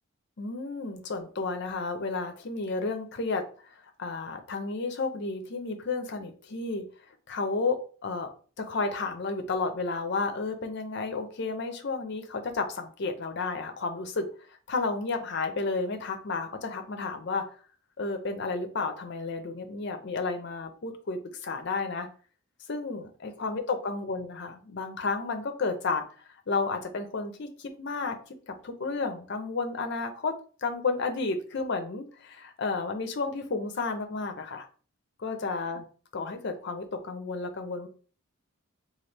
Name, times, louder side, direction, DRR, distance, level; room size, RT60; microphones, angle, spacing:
voice 1, 0.4-6.8 7.3-8.3 8.6-14.3 14.7-17.4 18.0-22.1 22.7-26.0 26.5-30.3 30.6-34.7 35.2-35.8 36.1-37.9, left 3 dB, 50° left, 6 dB, 0.5 m, -32 dB
3.1 x 2.3 x 3.3 m, 0.40 s
head